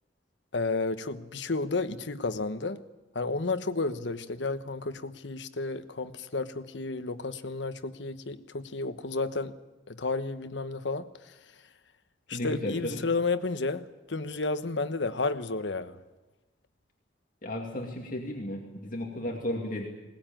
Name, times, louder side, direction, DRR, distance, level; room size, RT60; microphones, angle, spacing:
voice 1, 0.5-2.8 3.1-9.5 9.9-11.3 12.3-16.0, left 3 dB, 80° left, 10 dB, 1.1 m, -32 dB
voice 2, 12.3-13.1 17.4-19.9, left 1 dB, 50° left, 0 dB, 2.5 m, -34 dB
21.0 x 19.0 x 9.0 m, 1.1 s
head